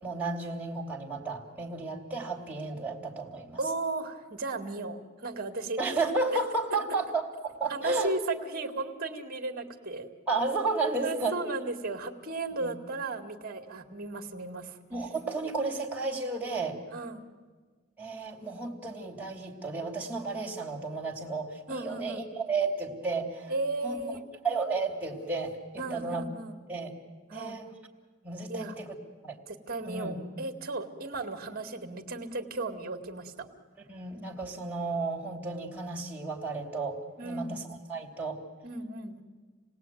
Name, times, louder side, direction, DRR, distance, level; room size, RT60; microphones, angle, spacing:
voice 1, 0.0-3.6 5.8-8.1 10.3-11.4 12.6-12.7 14.2-14.3 14.9-16.8 18.0-23.5 23.8-24.0 24.4-26.2 26.7-27.0 27.3-27.7 28.2-29.0 29.2-29.4 29.8-30.2 33.9-38.4, right 3 dB, 5° right, -2 dB, 3.0 m, -33 dB
voice 2, 3.6-5.8 7.7-10.1 11.0-14.8 16.9-17.2 21.7-22.2 23.5-24.2 25.8-26.6 27.3-27.6 28.5-28.7 29.5-33.5 37.2-37.6 38.6-39.2, right 3 dB, 45° right, 7 dB, 2.0 m, -35 dB
28.5 x 18.5 x 9.2 m, 1.5 s
head